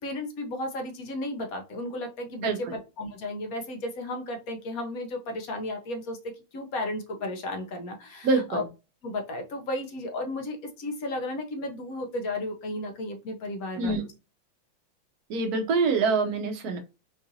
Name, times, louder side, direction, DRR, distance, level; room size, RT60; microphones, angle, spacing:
voice 1, 0.0-2.7 3.0-8.6 9.0-14.1, left 1 dB, 60° left, 4 dB, 0.9 m, -34 dB
voice 2, 2.4-2.7 8.2-8.7 13.8-14.0 15.3-16.8, right 4 dB, 65° right, 4 dB, 1.0 m, -25 dB
4.7 x 2.5 x 2.7 m, 0.28 s
omnidirectional pair, 2.2 m